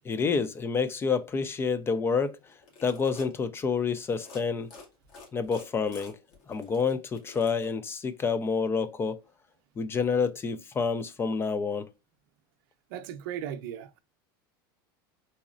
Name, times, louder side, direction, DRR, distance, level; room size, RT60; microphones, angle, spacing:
voice 1, 0.1-2.4 2.8-4.7 5.3-6.2 6.5-9.2 9.8-11.9, left 5 dB, 20° left, 0.4 m, -28 dB
sound 1, 2.5-3.3 4.1-4.4 4.7-7.7, left 4 dB, 55° left, 1.9 m, -49 dB
voice 2, 12.9-14.0, right 10 dB, 70° right, 0.6 m, -37 dB
4.0 x 3.0 x 2.4 m
supercardioid pair, 120°, 12 cm